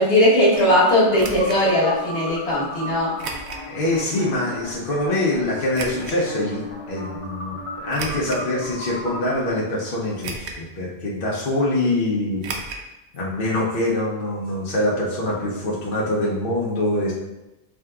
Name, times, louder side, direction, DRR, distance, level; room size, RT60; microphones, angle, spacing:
voice 1, 0.0-3.1, left 1 dB, 90° left, -6 dB, 1.5 m, -18 dB
sound 1, 0.5-9.5, left 1 dB, 35° left, 0.9 m, -35 dB
sound 2, 1.2-1.6 3.2-3.7 4.2-4.3 5.7-6.2 7.9-8.5 9.1-9.2 10.2-10.7 11.0-11.1 12.4-12.9 13.1-13.2 13.5-13.6, right 4 dB, 85° right, 0.9 m, -33 dB
voice 2, 3.7-7.6 7.8-12.8 13.1-17.1, left 1 dB, 60° left, -5 dB, 1.0 m, -24 dB
5.0 x 3.7 x 2.3 m, 0.99 s
omnidirectional pair, 1.1 m